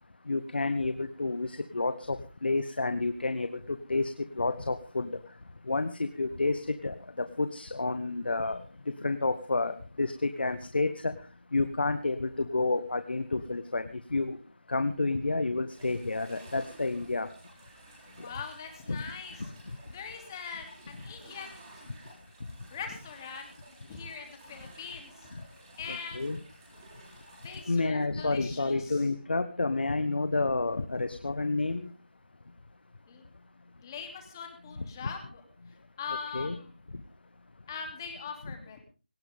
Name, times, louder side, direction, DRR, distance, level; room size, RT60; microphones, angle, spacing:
voice 1, 0.3-2.2 2.4-4.1 4.4-5.1 5.7-8.6 9.0-11.1 11.5-13.8 14.1-14.4 14.7-17.3 18.9-19.0 25.9-26.4 27.7-31.9 36.3-36.6, left 3 dB, 70° left, 10 dB, 1.3 m, -30 dB
sound 1, 15.7-27.8, right 2 dB, 20° right, 6.3 m, -54 dB
voice 2, 18.2-19.5 19.9-21.7 22.7-23.5 23.9-25.3 25.8-26.3 27.4-29.0 33.1-33.3 33.8-35.4 36.0-36.7 37.7-38.8, left 5 dB, 20° left, 4 dB, 3.0 m, -42 dB
18.5 x 17.5 x 3.6 m, 0.34 s
figure-of-eight pair, 170°, 6 cm